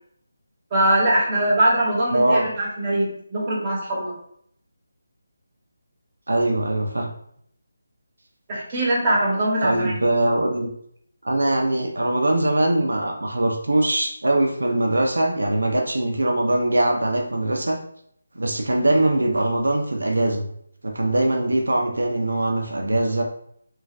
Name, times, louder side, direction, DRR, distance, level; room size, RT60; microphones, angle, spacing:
voice 1, 0.7-4.1 8.5-10.0, right 1 dB, 25° right, -5 dB, 1.0 m, -22 dB
voice 2, 2.1-2.5 6.3-7.1 9.6-10.7 11.2-17.8 18.3-20.5 20.8-23.2, right 1 dB, 85° right, 1 dB, 0.5 m, -22 dB
3.0 x 2.3 x 2.4 m, 0.67 s
figure-of-eight pair, 165°, 0 cm